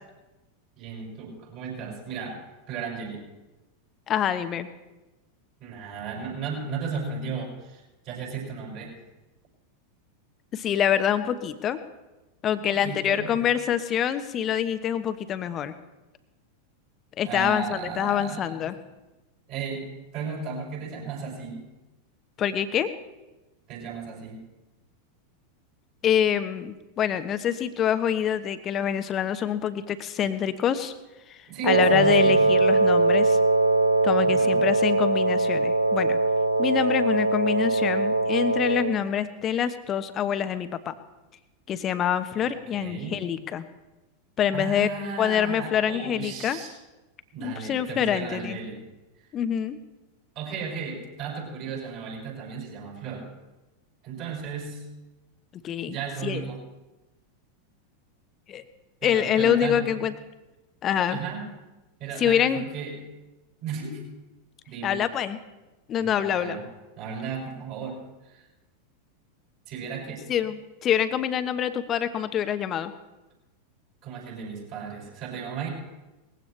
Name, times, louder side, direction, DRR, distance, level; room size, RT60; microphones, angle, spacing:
voice 1, 0.8-2.4 2.7-3.2 5.6-9.0 12.6-13.4 17.2-18.7 19.5-21.7 23.7-24.5 31.5-32.4 34.2-34.7 42.3-43.2 44.5-46.7 47.3-48.8 50.3-53.3 54.0-54.8 55.9-56.6 59.0-59.9 61.1-61.5 62.0-62.9 63.6-64.1 64.7-65.0 66.0-66.7 67.0-68.4 69.7-70.3 74.0-75.7, right 5 dB, 45° right, -2 dB, 6.4 m, -35 dB
voice 2, 4.1-4.7 10.5-11.8 12.4-15.7 17.2-18.8 22.4-22.9 26.0-30.9 31.3-31.4 31.6-33.4 34.0-36.2 36.6-40.9 41.7-43.6 44.4-44.9 45.2-46.6 47.4-48.6 49.3-49.8 55.5-56.0 56.2-56.5 58.5-58.6 59.0-60.1 60.8-61.2 62.2-62.6 64.8-65.4 65.9-66.6 70.3-72.9, left 9 dB, 30° left, 11 dB, 1.0 m, -26 dB
Wind instrument woodwind instrument, 31.7-39.0, right 2 dB, 90° right, 0.7 m, -21 dB
20.0 x 16.0 x 3.3 m, 1.1 s
figure-of-eight pair, 90°, 0 cm